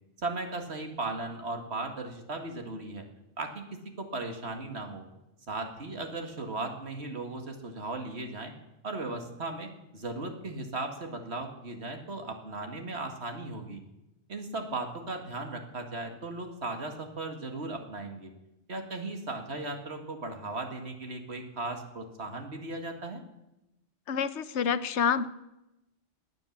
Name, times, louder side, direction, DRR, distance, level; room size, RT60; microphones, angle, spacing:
voice 1, 0.2-3.0 3.4-3.6 4.0-5.0 5.5-8.5 8.8-13.8 14.3-18.3 18.7-23.2, right 2 dB, 65° right, 4 dB, 2.2 m, -37 dB
voice 2, 24.1-25.3, left 7 dB, 75° left, 14 dB, 1.0 m, -27 dB
18.0 x 9.3 x 7.3 m, 0.93 s
omnidirectional pair, 1.2 m